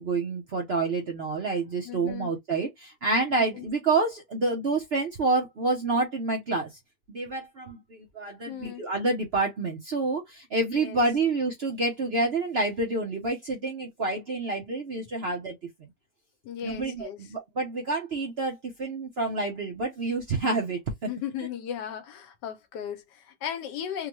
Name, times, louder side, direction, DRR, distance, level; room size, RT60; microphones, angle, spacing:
voice 1, 0.0-6.7 7.1-15.6 16.6-20.8, right 3 dB, 50° right, 0.8 m, -28 dB
voice 2, 1.8-2.3 3.5-3.7 8.5-8.8 10.7-11.0 16.4-17.2 21.1-24.1, left 9 dB, 80° left, 1.3 m, -36 dB
3.7 x 2.2 x 3.0 m
omnidirectional pair, 1.8 m